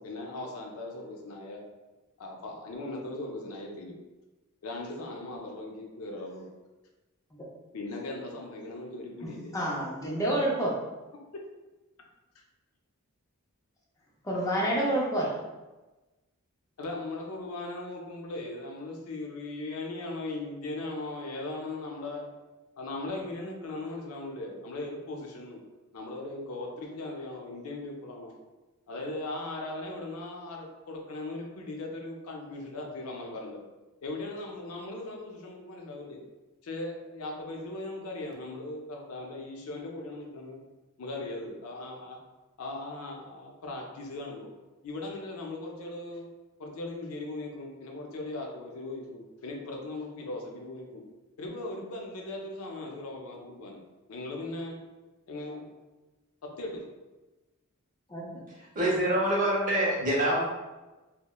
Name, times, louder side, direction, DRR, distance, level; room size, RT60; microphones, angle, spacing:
voice 1, 0.0-1.6 2.2-4.0 4.6-6.5 7.7-9.5 11.3-11.4 16.8-22.3 22.8-25.6 25.9-28.3 28.9-33.6 34.0-36.2 36.6-40.6 41.0-42.2 42.6-44.5 44.8-46.3 46.6-51.0 51.4-53.8 54.1-54.8 55.3-55.7 56.4-56.8, left 2 dB, 75° left, 0 dB, 0.5 m, -38 dB
voice 2, 9.2-10.8 14.2-15.3 58.1-58.4, right 1 dB, 15° left, -3 dB, 0.4 m, -29 dB
voice 3, 58.7-60.5, right 1 dB, 35° right, -5 dB, 0.7 m, -25 dB
2.8 x 2.1 x 2.2 m, 1.1 s
head